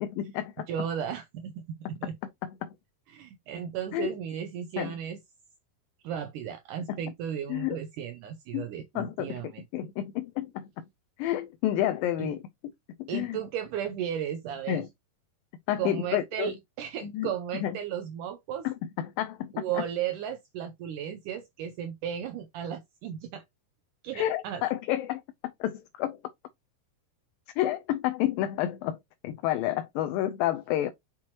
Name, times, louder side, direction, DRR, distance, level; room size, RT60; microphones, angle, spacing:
voice 1, 0.0-0.7 2.0-2.1 2.4-2.7 3.9-4.1 4.8-4.9 6.9-7.0 7.5-7.8 8.5-8.7 9.0-9.4 9.7-10.8 11.2-12.4 13.0-13.4 14.7-14.9 15.7-16.5 17.0-17.3 17.6-17.7 18.6-19.6 24.1-25.2 25.6-26.2 27.6-29.0 29.2-30.9, left 13 dB, 80° left, 2.2 m, -30 dB
voice 2, 0.7-2.1 3.1-5.2 6.0-9.6 12.2-12.3 13.1-14.8 15.8-18.7 19.5-23.4 24.0-24.6, right 9 dB, 85° right, 1.9 m, -35 dB
6.2 x 5.9 x 2.9 m
omnidirectional pair, 4.4 m